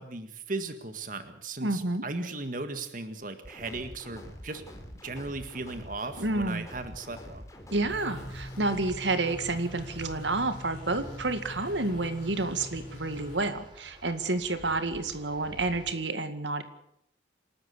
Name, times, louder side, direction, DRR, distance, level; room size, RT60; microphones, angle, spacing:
voice 1, 0.0-4.6 5.0-7.4, right 3 dB, 45° right, 8 dB, 1.8 m, -37 dB
voice 2, 1.6-2.0 6.2-6.7 7.7-16.6, right 2 dB, 80° right, 10 dB, 2.0 m, -30 dB
sound 1, 3.4-9.1, equal, 15° left, 4.0 m, -46 dB
sound 2, 7.9-13.4, equal, 50° left, 5.9 m, -43 dB
sound 3, 9.3-15.9, equal, 25° right, 5.7 m, -49 dB
28.0 x 12.5 x 8.3 m, 0.73 s
head